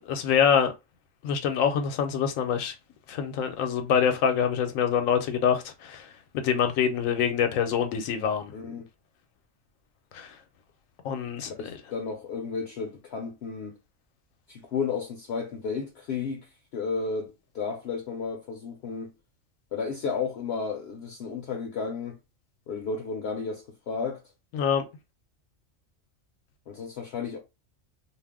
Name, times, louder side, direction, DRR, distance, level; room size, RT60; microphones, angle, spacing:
voice 1, 0.1-0.7 1.2-2.7 3.1-6.1 6.3-8.5 10.1-10.3 11.0-11.8 24.5-24.8, left 7 dB, 85° left, 1.0 m, -25 dB
voice 2, 8.5-8.9 11.5-13.8 14.5-19.1 19.7-22.2 22.7-24.2 26.7-27.4, left 5 dB, 65° left, 0.7 m, -33 dB
2.5 x 2.1 x 3.4 m
omnidirectional pair, 1.4 m